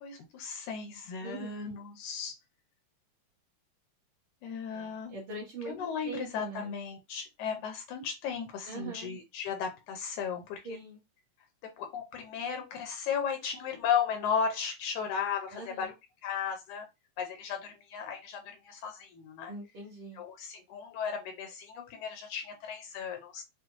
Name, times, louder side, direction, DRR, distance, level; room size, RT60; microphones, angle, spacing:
voice 1, 0.0-2.3 4.4-5.2 5.7-10.6 11.6-15.9 16.2-16.9 17.2-19.5 20.1-23.4, left 7 dB, 80° left, 1.8 m, -35 dB
voice 2, 1.2-1.8 4.7-5.7 6.0-6.7 8.6-9.1 10.6-11.0 15.5-15.9 19.5-20.2, right 3 dB, 60° right, 1.6 m, -42 dB
5.6 x 2.3 x 3.0 m
omnidirectional pair, 3.8 m